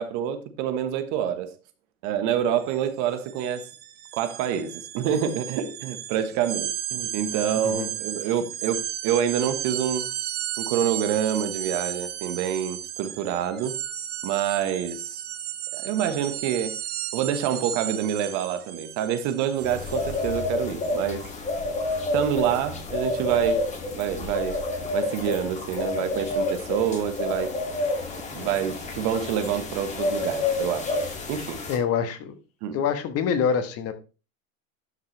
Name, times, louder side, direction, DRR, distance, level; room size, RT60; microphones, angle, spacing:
voice 1, 0.0-1.5 2.0-3.7 4.1-10.1 10.6-13.8 14.2-15.2 15.7-16.8 17.1-21.3 22.1-23.6 23.9-24.6 24.9-27.5 28.3-31.0 31.3-31.6 32.6-32.8, right 9 dB, 45° right, 1.3 m, -27 dB
sound 1, 2.6-2.8 3.1-20.3, right 11 dB, 25° right, 0.7 m, -34 dB
sound 2, 19.6-31.8, left 2 dB, 15° left, 2.3 m, -29 dB
voice 2, 31.7-32.4 32.7-33.9, left 7 dB, 35° left, 1.4 m, -26 dB
12.0 x 5.9 x 3.2 m
hypercardioid pair, 125°, 40 cm